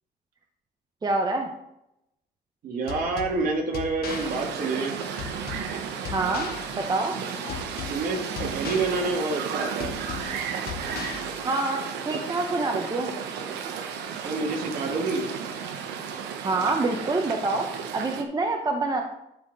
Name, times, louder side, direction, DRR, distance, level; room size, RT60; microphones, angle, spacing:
voice 1, 1.0-1.5 6.1-7.2 11.4-13.1 16.4-19.0, right 3 dB, 25° right, 3 dB, 1.0 m, -26 dB
voice 2, 2.6-5.0 7.9-9.9 14.2-15.3, right 3 dB, 60° right, 1 dB, 2.1 m, -28 dB
sound 1, 2.9-11.9, left 8 dB, 65° left, 1.0 m, -39 dB
sound 2, 4.1-18.2, right 7 dB, 85° right, 1.0 m, -33 dB
11.5 x 4.2 x 5.0 m, 0.82 s
cardioid pair, 110°, 17 cm